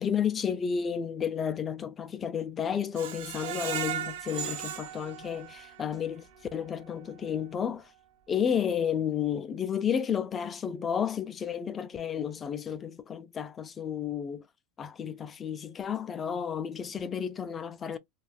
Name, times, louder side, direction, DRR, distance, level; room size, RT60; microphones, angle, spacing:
voice 1, 0.0-7.9 8.3-14.5 14.8-18.0, left 8 dB, 25° left, 0.3 m, -32 dB
Screech, 3.0-5.9 6.4-6.5 6.9-7.0, right 10 dB, 80° right, 0.6 m, -36 dB
2.4 x 2.2 x 2.3 m
supercardioid pair, 130°, 0 cm